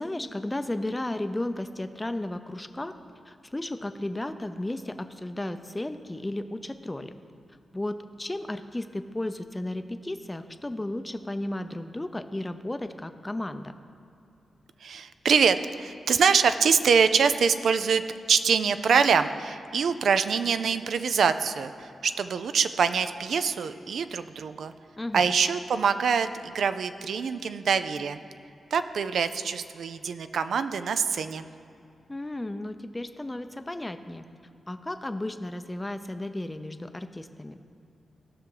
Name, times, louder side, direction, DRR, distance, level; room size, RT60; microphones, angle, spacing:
voice 1, 0.0-2.9 3.3-7.1 7.7-13.7 25.0-25.3 32.1-34.2 34.7-37.7, left 1 dB, 15° left, 9 dB, 0.5 m, -34 dB
voice 2, 14.8-18.0 18.3-24.7 25.1-28.2 28.7-31.5, right 6 dB, 75° right, 11 dB, 0.4 m, -24 dB
16.5 x 5.9 x 3.9 m, 2.6 s
cardioid pair, 75°, 0 cm